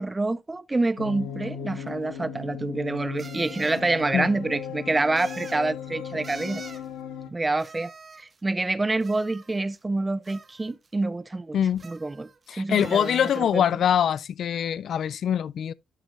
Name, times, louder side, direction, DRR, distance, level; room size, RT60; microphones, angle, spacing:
voice 1, 0.0-6.6 7.3-7.9 8.2-11.6 11.8-13.6, right 2 dB, 20° right, 0.5 m, -27 dB
sound 1, 1.0-7.3, left 7 dB, 90° left, 1.7 m, -37 dB
sound 2, 1.9-2.0 3.2-3.9 5.2-5.7 6.2-6.9 7.6-8.4 9.0-9.8 10.2-10.9 11.8-12.5 12.8-13.5, right 4 dB, 35° right, 1.3 m, -45 dB
voice 2, 12.5-15.7, left 9 dB, 65° left, 0.4 m, -24 dB
12.5 x 6.0 x 2.4 m
cardioid pair, 90°, 0 cm